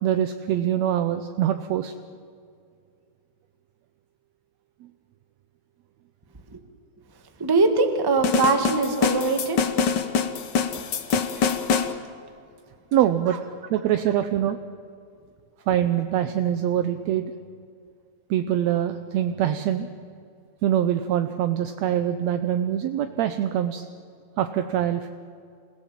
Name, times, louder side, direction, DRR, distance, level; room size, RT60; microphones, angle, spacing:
voice 1, 0.0-1.9 12.9-14.6 15.7-17.3 18.3-19.9 20.6-23.8 24.4-25.1, right 10 dB, 75° right, 8 dB, 1.9 m, -24 dB
voice 2, 7.4-9.6 11.3-11.4, right 3 dB, 15° right, 5 dB, 0.7 m, -22 dB
sound 1, 8.2-11.9, left 6 dB, 65° left, 1.1 m, -24 dB
27.0 x 17.0 x 7.4 m, 2.3 s
omnidirectional pair, 3.4 m